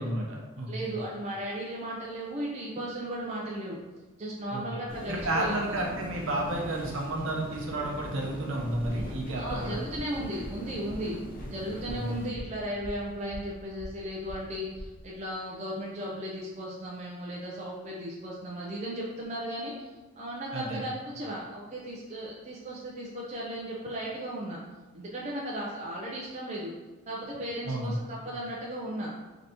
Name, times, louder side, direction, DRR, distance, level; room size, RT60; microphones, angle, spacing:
voice 1, 0.0-0.9 4.5-4.6 5.1-9.8 11.9-12.4 20.5-20.8 27.6-27.9, right 1 dB, 60° right, -1 dB, 0.8 m, -31 dB
voice 2, 0.7-3.8 4.2-5.6 9.3-11.2 11.5-19.9 20.2-24.6 24.9-26.7 27.1-29.1, right 1 dB, 30° right, -4 dB, 0.4 m, -36 dB
sound 1, 4.9-12.3, equal, 40° left, 0.7 m, -41 dB
sound 2, 9.4-15.1, equal, 90° right, 1.1 m, -43 dB
3.9 x 3.3 x 2.8 m, 1.3 s
head